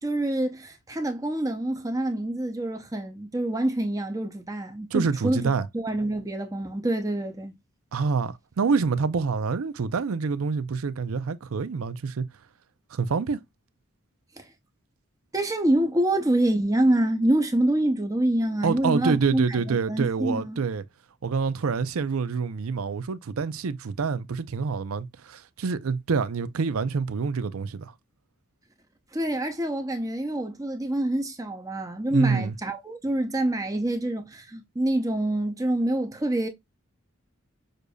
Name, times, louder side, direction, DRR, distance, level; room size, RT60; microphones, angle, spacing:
voice 1, 0.0-7.5 14.4-14.5 15.3-20.6 29.1-36.5, right 1 dB, 15° right, 0.6 m, -26 dB
voice 2, 4.9-5.7 7.9-12.3 12.9-13.4 18.6-20.8 21.2-27.9 32.1-32.5, right 5 dB, 85° right, 0.5 m, -27 dB
6.5 x 2.5 x 2.3 m
head